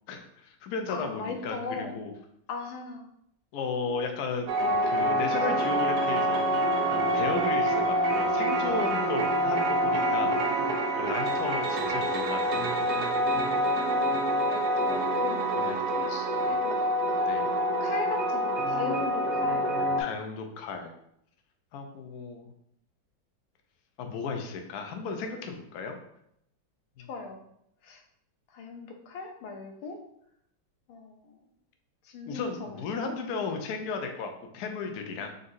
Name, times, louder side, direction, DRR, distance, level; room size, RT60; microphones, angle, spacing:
voice 1, 0.1-2.1 3.5-4.5 4.9-6.6 6.9-13.0 15.5-16.0 17.2-17.5 20.0-20.9 21.7-22.5 24.0-26.0 27.0-27.1 32.3-35.3, left 4 dB, 70° left, 4 dB, 0.9 m, -35 dB
voice 2, 0.9-1.9 2.5-3.1 9.9-10.8 13.7-16.8 17.8-20.0 27.1-27.4 27.8-28.0 28.5-30.0 30.9-31.4 32.0-33.3, left 4 dB, 90° left, 3 dB, 1.5 m, -39 dB
sound 1, 4.5-20.0, right 1 dB, 70° right, 1.0 m, -26 dB
3.9 x 3.8 x 2.6 m, 0.74 s
omnidirectional pair, 2.1 m